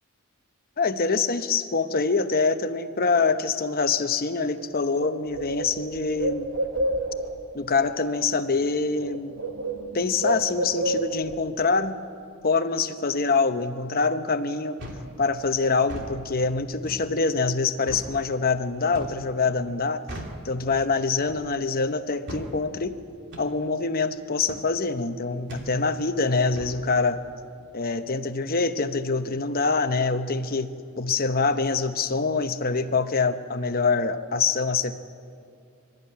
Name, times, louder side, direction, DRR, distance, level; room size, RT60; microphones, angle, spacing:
voice 1, 0.8-6.5 7.5-9.4 9.9-12.0 12.4-14.8 15.2-20.0 20.4-23.0 23.4-27.2 27.7-35.0, left 4 dB, 45° left, 9 dB, 0.9 m, -25 dB
Bird, 4.6-4.7 4.9-7.4 8.5-8.8 9.0-11.4, right 2 dB, 85° right, 2.2 m, -29 dB
sound 1, 14.8-15.1 15.8-16.1 16.8-17.1 17.9-18.1 18.9-19.2 20.1-20.4 21.3-21.5 22.3-22.5 23.3-23.5 24.5-24.7 25.5-25.7 26.6-26.8, right 1 dB, 55° right, 2.8 m, -38 dB
25.5 x 13.5 x 9.5 m, 2.4 s
head